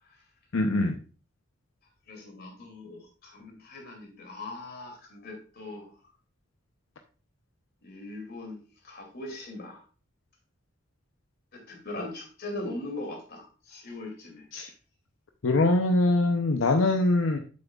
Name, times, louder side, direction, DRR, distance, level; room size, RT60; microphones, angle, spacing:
voice 1, 0.5-0.9 14.5-14.7 15.4-17.4, left 2 dB, 90° left, 5 dB, 0.7 m, -23 dB
voice 2, 2.1-5.9 7.8-8.6 8.8-9.8 11.5-14.4, left 2 dB, 55° left, 2 dB, 2.6 m, -40 dB
8.9 x 7.6 x 2.4 m, 0.36 s
head